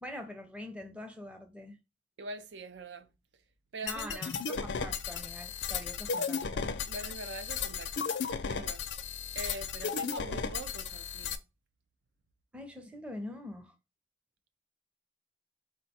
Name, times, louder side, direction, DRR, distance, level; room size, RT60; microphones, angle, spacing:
voice 1, 0.0-1.8 3.8-6.7 12.5-13.7, left 1 dB, 5° right, 0.6 m, -44 dB
voice 2, 2.2-3.1 3.7-4.2 6.9-8.1 8.5-8.8 9.3-11.4, right 2 dB, 80° right, 0.5 m, -43 dB
sound 1, 3.9-11.4, left 6 dB, 85° left, 0.5 m, -35 dB
4.5 x 2.2 x 4.2 m
head